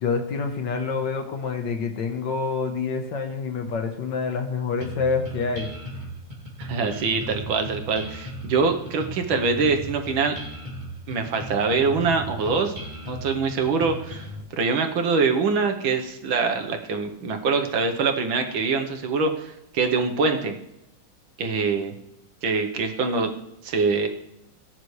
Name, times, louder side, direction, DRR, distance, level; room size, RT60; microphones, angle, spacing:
voice 1, 0.0-5.7, left 4 dB, 65° left, 5 dB, 1.8 m, -27 dB
sound 1, 4.8-14.4, equal, 20° right, 2.9 m, -36 dB
voice 2, 6.6-10.3 11.1-12.8 13.1-14.3 14.5-20.6 21.4-21.9 22.4-23.3 23.6-24.1, right 4 dB, 75° right, 5 dB, 1.9 m, -24 dB
19.0 x 9.7 x 3.3 m, 0.84 s
omnidirectional pair, 2.2 m